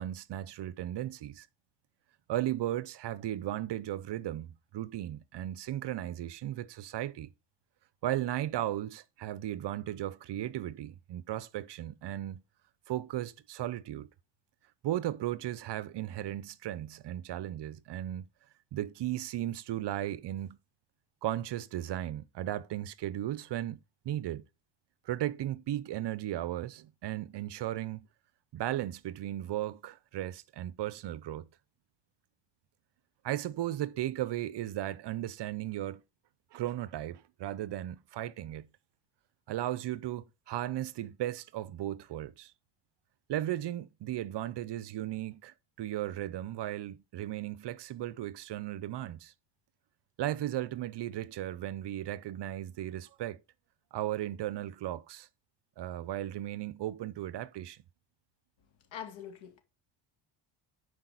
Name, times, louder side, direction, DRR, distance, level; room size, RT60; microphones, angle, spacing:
voice 1, 0.0-1.5 2.3-7.3 8.0-12.4 12.9-14.1 14.8-18.3 18.7-20.6 21.2-24.4 25.1-28.1 28.5-31.5 33.2-36.0 36.5-38.7 39.5-42.5 43.3-49.3 50.2-53.4 53.9-55.3 55.8-57.8, right 13 dB, 55° right, 0.7 m, -36 dB
voice 2, 58.9-59.6, left 8 dB, 65° left, 2.2 m, -43 dB
10.5 x 4.9 x 3.9 m
cardioid pair, 115°, 49 cm